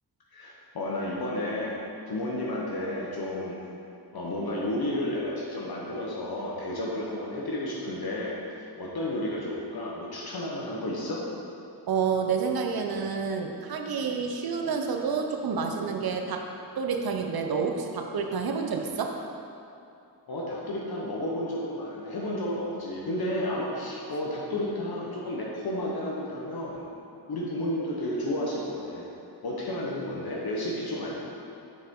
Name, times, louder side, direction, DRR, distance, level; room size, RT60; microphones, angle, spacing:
voice 1, 0.3-1.8 2.1-3.6 4.1-8.4 8.8-11.2 20.3-26.8 27.3-29.1 29.4-31.1, left 1 dB, 60° left, -4 dB, 1.0 m, -32 dB
voice 2, 11.9-16.4 16.8-19.1, right 5 dB, 60° right, 3 dB, 0.7 m, -29 dB
6.6 x 5.5 x 3.7 m, 2.7 s
cardioid pair, 80°, 42 cm